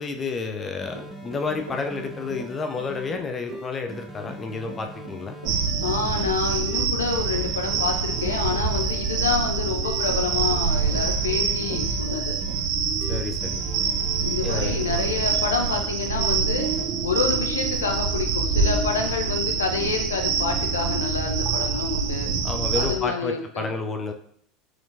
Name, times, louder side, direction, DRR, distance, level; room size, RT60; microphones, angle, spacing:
voice 1, 0.0-5.4 13.1-13.6 14.4-14.8 22.4-24.1, left 4 dB, 25° left, 5 dB, 0.4 m, -30 dB
sound 1, 0.8-3.1 3.5-6.3 6.7-9.4 9.8-12.6 13.0-15.8 16.2-16.9, right 2 dB, 5° left, 0.9 m, -41 dB
Run / Walk footsteps, 0.9-12.6, right 2 dB, 80° right, 0.8 m, -41 dB
sound 2, 5.5-23.0, right 5 dB, 50° right, 0.5 m, -25 dB
voice 2, 5.8-12.3 14.2-16.7 17.0-22.3 22.7-23.7, left 5 dB, 70° left, 4 dB, 0.5 m, -28 dB
4.5 x 4.2 x 2.5 m, 0.66 s
figure-of-eight pair, 75°, 0 cm